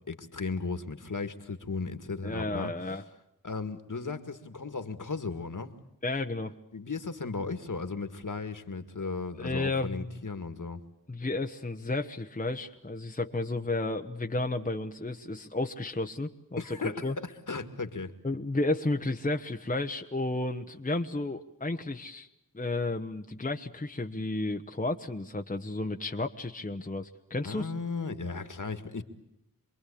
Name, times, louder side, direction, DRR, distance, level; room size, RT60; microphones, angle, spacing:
voice 1, 0.1-2.7 3.4-5.7 6.7-10.8 16.6-18.1 27.5-29.0, left 4 dB, 60° left, 9 dB, 2.0 m, -36 dB
voice 2, 2.2-3.0 6.0-6.5 9.4-10.2 11.1-17.2 18.2-22.3 22.5-27.7, left 2 dB, 20° left, 5 dB, 1.1 m, -32 dB
27.5 x 22.0 x 8.6 m, 0.83 s
wide cardioid pair, 65°, 36 cm